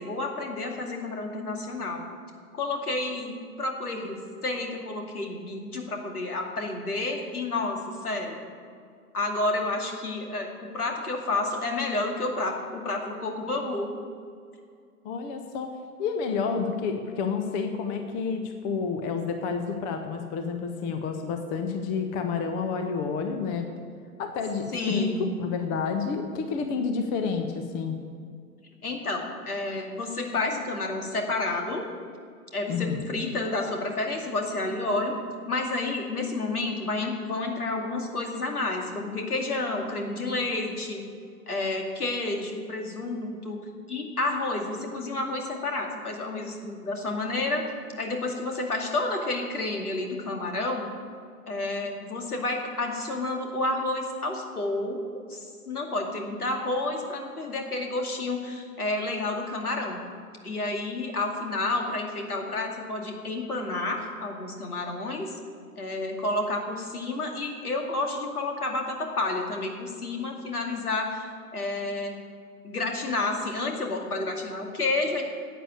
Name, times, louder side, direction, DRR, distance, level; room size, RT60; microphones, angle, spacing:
voice 1, 0.0-2.1 2.5-8.4 9.1-13.9 24.7-25.4 28.8-31.9 32.5-35.1 35.5-41.0 41.5-43.6 43.9-47.6 48.0-50.9 51.5-55.0 55.3-60.0 60.4-65.4 65.8-71.3 71.5-72.1 72.6-75.2, left 2 dB, 70° left, 2 dB, 2.4 m, -30 dB
voice 2, 15.0-15.7 16.0-23.7 24.2-28.0 32.7-33.0, left 5 dB, 20° left, 6 dB, 0.7 m, -29 dB
11.0 x 8.4 x 8.0 m, 2.3 s
figure-of-eight pair, 110°, 46 cm